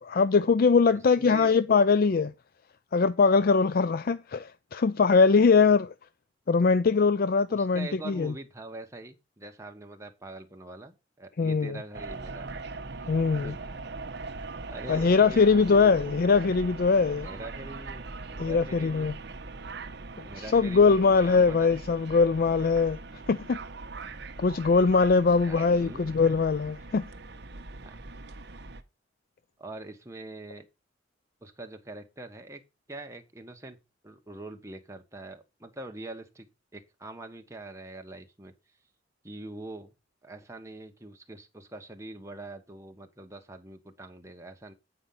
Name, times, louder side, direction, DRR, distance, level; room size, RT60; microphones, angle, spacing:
voice 1, 0.0-2.3 2.9-5.9 6.5-8.3 11.4-11.8 13.1-13.5 14.9-17.3 18.4-19.1 20.2-20.3 20.5-23.0 23.3-23.6 24.4-27.0, left 4 dB, 55° left, 0.4 m, -22 dB
voice 2, 1.2-1.5 7.5-12.6 13.4-13.8 14.3-16.2 17.2-19.1 20.2-21.9 25.4-26.2 27.8-28.0 29.6-30.6 31.4-32.6 32.9-33.8 34.0-36.5 36.7-38.5 39.2-39.9 40.2-44.7, right 2 dB, 15° right, 1.3 m, -43 dB
sound 1, 11.9-28.8, right 3 dB, 65° right, 1.0 m, -41 dB
9.0 x 5.2 x 5.7 m
head